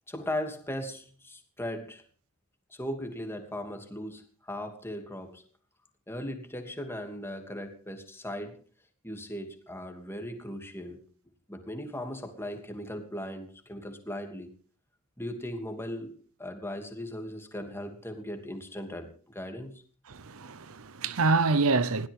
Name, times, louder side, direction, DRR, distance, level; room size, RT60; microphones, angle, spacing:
voice 1, 0.1-2.0 2.7-5.4 6.1-8.6 9.0-11.0 11.5-14.5 15.2-19.8, left 1 dB, 10° left, 2.8 m, -38 dB
voice 2, 20.1-22.1, right 3 dB, 70° right, 0.8 m, -26 dB
20.5 x 17.0 x 3.7 m
head